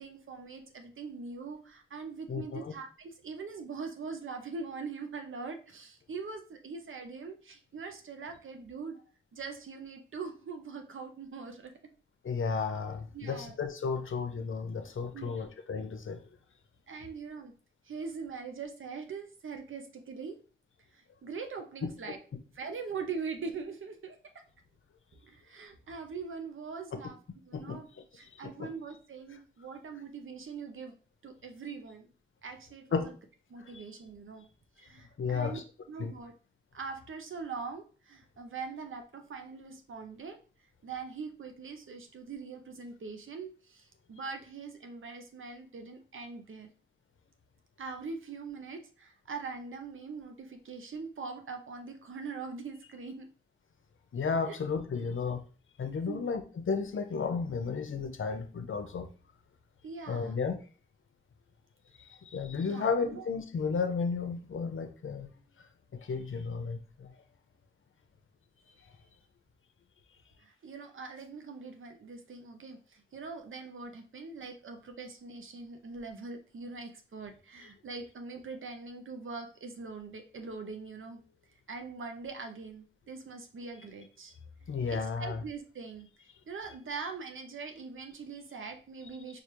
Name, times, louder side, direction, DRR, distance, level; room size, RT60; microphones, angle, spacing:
voice 1, 0.0-9.0 9.3-11.7 13.1-13.6 15.1-15.4 16.9-17.5 17.8-20.4 20.9-22.2 22.5-24.2 25.1-27.2 27.5-27.9 28.1-30.9 31.2-32.1 32.4-33.1 33.5-34.5 34.8-35.6 35.9-36.3 36.7-40.4 40.8-46.7 47.8-53.3 54.5-54.6 56.1-56.2 59.8-60.4 62.6-63.3 70.4-81.2 81.7-84.3 84.9-89.4, right 4 dB, 90° right, 5 dB, 0.7 m, -42 dB
voice 2, 2.3-2.7 12.2-16.2 21.8-21.9 27.5-27.8 28.6-28.7 32.9-33.1 33.7-33.8 35.2-35.6 36.0-36.1 54.1-55.4 55.8-59.1 60.1-60.6 62.0-65.3 65.9-67.1 84.7-85.4, left 5 dB, 85° left, 7 dB, 0.6 m, -33 dB
4.9 x 2.4 x 3.0 m, 0.38 s
wide cardioid pair, 60°, 20 cm